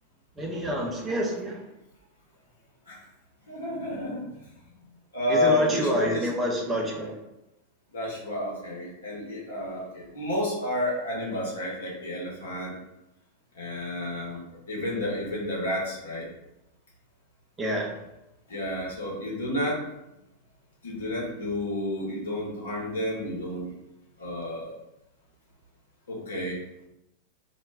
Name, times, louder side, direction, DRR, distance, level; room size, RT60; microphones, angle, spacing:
voice 1, 0.4-1.6 5.3-7.1 17.6-18.0, equal, 15° right, -1 dB, 0.6 m, -27 dB
voice 2, 3.5-4.2 5.1-6.3 7.9-12.7 13.5-14.4 14.7-16.2 18.5-19.8 20.8-23.7 24.2-24.7 26.1-26.6, left 1 dB, 70° left, -4 dB, 0.9 m, -30 dB
2.3 x 2.1 x 3.3 m, 0.90 s
figure-of-eight pair, 90°, 0 cm